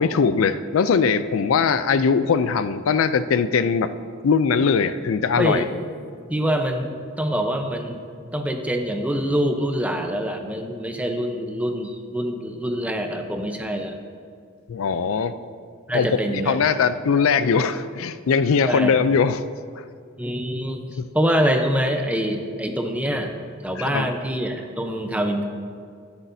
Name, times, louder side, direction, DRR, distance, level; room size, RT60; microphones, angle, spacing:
voice 1, 0.0-3.9 4.2-5.7 14.7-15.4 15.9-19.4 19.8-19.9 21.0-21.1 23.8-24.1, left 5 dB, 80° left, 13 dB, 0.4 m, -21 dB
voice 2, 5.3-5.7 6.3-8.0 8.3-14.0 15.9-16.6 18.7-18.9 20.2-20.8 21.1-23.3 23.6-25.5, equal, 5° right, 4 dB, 0.7 m, -25 dB
20.5 x 8.2 x 2.7 m, 2.1 s
head